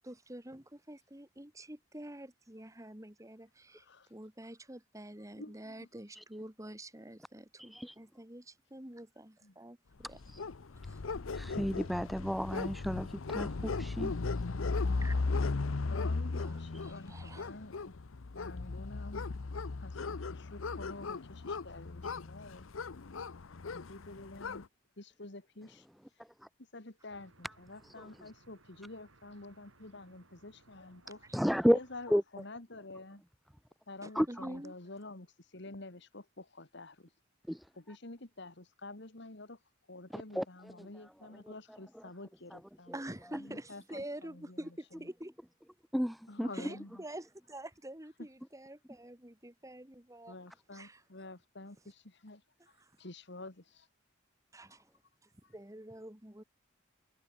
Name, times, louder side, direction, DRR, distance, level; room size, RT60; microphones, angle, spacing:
voice 1, 0.0-10.2 10.9-11.0 15.0-15.2 16.4-17.5 34.0-34.7 42.9-45.3 46.5-50.4 50.7-51.0 52.8-52.9 54.5-54.8 55.5-56.4, right 1 dB, 15° right, 2.0 m, -47 dB
voice 2, 3.7-4.1 5.3-5.9 9.4-9.6 15.8-18.0 18.3-19.3 19.8-22.7 23.7-24.7 25.0-25.9 26.7-31.2 31.7-33.2 33.9-37.1 37.8-39.6 39.9-42.9 43.3-45.1 46.3-47.0 48.2-48.3 50.3-52.4 53.0-53.9 54.7-54.8 55.4-55.5, left 2 dB, 60° left, 2.1 m, -49 dB
voice 3, 7.6-8.0 10.0-10.4 11.3-14.1 26.4-26.5 27.8-28.1 31.3-31.8 32.1-32.2 34.1-34.5 37.5-37.7 40.1-40.9 42.5-42.6 43.3-43.4 45.9-46.7, equal, ahead, 0.4 m, -32 dB
sound 1, 10.1-24.6, left 3 dB, 80° left, 0.8 m, -36 dB
sound 2, 27.1-32.2, right 2 dB, 85° right, 6.2 m, -64 dB
head